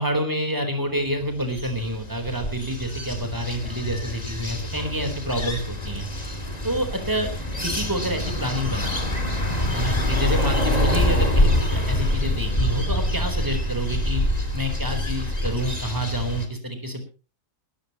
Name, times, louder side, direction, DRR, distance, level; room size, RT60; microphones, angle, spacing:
voice 1, 0.0-6.1 6.6-7.3 7.6-9.1 9.7-14.2 14.5-17.1, equal, 10° right, 6 dB, 4.0 m, -28 dB
sound 1, 1.2-16.5, left 1 dB, 25° left, 2.7 m, -25 dB
20.5 x 14.5 x 3.1 m, 0.34 s
omnidirectional pair, 1.7 m